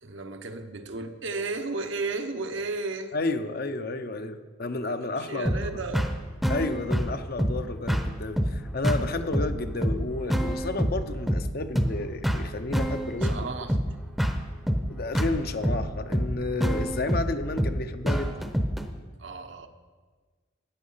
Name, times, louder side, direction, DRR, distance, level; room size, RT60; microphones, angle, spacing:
voice 1, 0.0-3.1 5.2-6.1 8.8-9.6 13.2-13.8 19.2-19.7, right 3 dB, 65° right, 6 dB, 1.0 m, -34 dB
voice 2, 3.1-5.7 6.5-13.5 14.9-18.4, left 2 dB, 50° left, 8 dB, 0.7 m, -31 dB
sound 1, 5.5-18.9, equal, ahead, 0.8 m, -27 dB
14.0 x 9.5 x 5.7 m, 1.4 s
head